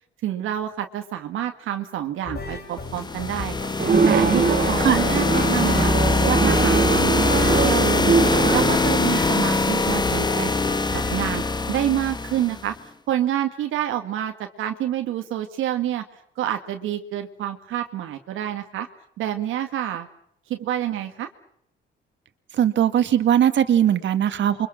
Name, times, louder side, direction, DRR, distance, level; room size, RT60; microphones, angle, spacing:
voice 1, 0.2-3.5 4.1-5.9 6.3-8.2 8.5-10.5 10.9-11.4 11.7-12.7 13.1-16.0 16.4-18.9 19.2-20.1 20.5-21.3, right 11 dB, 85° right, 5 dB, 1.9 m, -27 dB
sound 1, 2.2-11.4, left 4 dB, 55° left, 7.2 m, -35 dB
sound 2, 2.8-12.7, left 3 dB, 20° left, 1.6 m, -22 dB
sound 3, 3.8-8.8, right 5 dB, 45° right, 3.5 m, -22 dB
voice 2, 22.5-24.7, right 10 dB, 65° right, 9 dB, 2.2 m, -19 dB
29.0 x 24.0 x 6.3 m, 0.70 s
cardioid pair, 90°, 20 cm